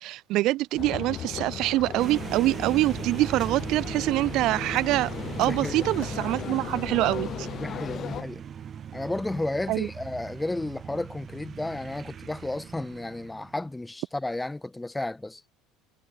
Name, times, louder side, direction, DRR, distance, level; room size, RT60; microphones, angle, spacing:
voice 1, 0.0-5.1 5.4-7.5 9.7-9.9, right 17 dB, 60° right, 0.4 m, -25 dB
sound 1, 0.8-8.2, left 10 dB, 45° left, 0.5 m, -37 dB
sound 2, 2.0-13.7, right 8 dB, 35° right, 1.6 m, -38 dB
voice 2, 5.4-5.9 7.6-8.4 8.9-15.4, left 2 dB, 10° left, 1.2 m, -33 dB
sound 3, 7.9-9.8, right 19 dB, 90° right, 4.1 m, -61 dB
supercardioid pair, 100°, 0 cm